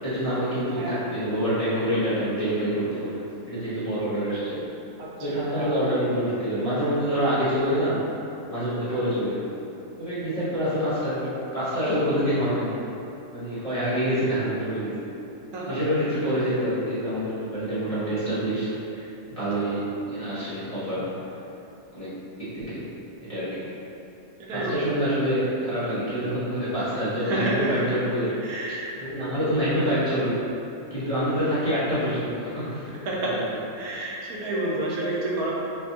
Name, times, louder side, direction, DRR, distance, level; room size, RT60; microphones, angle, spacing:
voice 1, 0.0-3.2 3.5-4.6 5.2-8.0 8.5-9.5 10.0-12.7 13.3-15.1 15.7-21.0 21.9-22.1 22.4-22.8 23.2-23.7 24.5-28.3 29.0-30.4 30.9-32.9 33.3-33.4, equal, 25° left, -13 dB, 1.0 m, -26 dB
voice 2, 5.4-5.9 15.5-15.8 24.4-24.8 27.2-27.7 28.3-28.9 32.9-33.3 33.8-35.5, right 2 dB, 80° right, -4 dB, 1.1 m, -29 dB
5.1 x 2.5 x 2.8 m, 2.9 s
omnidirectional pair, 1.6 m